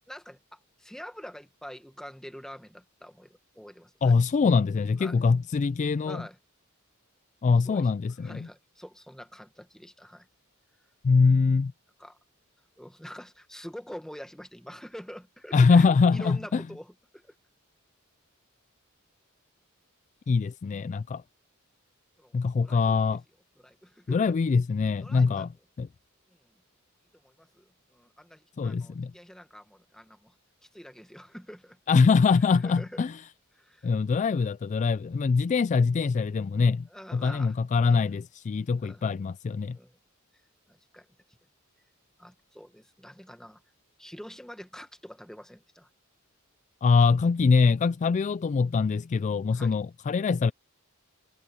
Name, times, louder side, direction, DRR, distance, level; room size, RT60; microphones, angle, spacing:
voice 1, 0.1-4.2 5.0-5.2 6.0-6.4 7.6-7.9 8.2-10.3 12.0-12.2 12.8-17.3 22.2-23.0 23.6-24.3 25.0-25.5 26.3-26.5 27.2-30.3 30.6-31.8 32.6-33.1 33.5-33.9 36.9-37.6 37.8-38.1 38.8-39.0 39.7-40.0 40.7-41.1 42.2-43.6 44.0-45.9 49.5-49.8, equal, 5° left, 1.6 m, -46 dB
voice 2, 4.0-6.2 7.4-8.5 11.0-11.7 15.5-16.6 20.3-21.2 22.3-23.2 24.1-25.5 25.8-25.9 28.6-29.1 31.9-33.2 33.8-36.9 37.1-39.8 46.8-50.5, left 4 dB, 35° left, 0.3 m, -23 dB
head